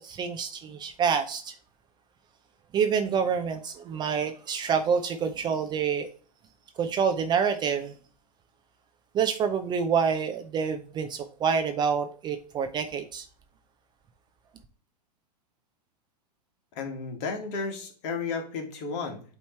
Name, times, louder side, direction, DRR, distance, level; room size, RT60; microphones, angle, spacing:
voice 1, 0.0-1.5 2.7-6.1 6.8-7.9 9.1-13.2, right 6 dB, 20° right, 7 dB, 0.5 m, -27 dB
voice 2, 16.8-19.2, left 4 dB, 45° left, 4 dB, 1.8 m, -33 dB
8.3 x 3.1 x 4.3 m, 0.42 s
hypercardioid pair, 115°, 21 cm